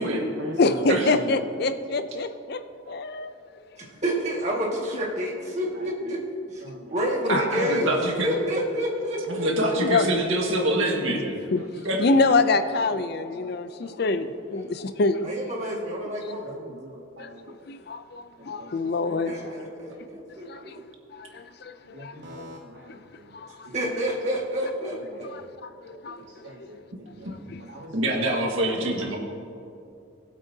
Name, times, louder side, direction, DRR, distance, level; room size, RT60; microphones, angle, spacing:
voice 1, 0.0-1.4 2.8-3.0 5.7-6.1 6.6-7.0 7.2-7.5 11.6-11.7 12.7-13.0 13.2-13.9 15.6-15.7 16.4-17.7 18.4-20.2 20.5-20.6 21.9-24.0 24.3-24.4 24.9-25.5 25.9-28.3, equal, 60° right, 0 dB, 0.8 m, -41 dB
voice 2, 0.6-3.3 7.3-7.4 9.8-10.1 10.7-11.2 11.5-15.3 17.2-17.3 17.7-19.7 20.5-20.8 21.1-22.4 23.3-23.7 24.8-25.0 25.2-26.2 26.6-26.7 27.5-27.6 28.6-28.8, left 3 dB, 50° left, 10 dB, 0.4 m, -26 dB
voice 3, 3.7-6.2 6.5-6.6 6.9-7.9 8.2-10.1 15.2-16.5 19.2-20.7 23.7-25.5, equal, 35° right, -3 dB, 1.8 m, -29 dB
voice 4, 7.3-8.3 9.3-11.4 11.8-12.0 27.2-27.3 27.9-29.2, right 1 dB, 80° right, 0 dB, 1.7 m, -25 dB
19.5 x 8.2 x 2.8 m, 2.5 s
head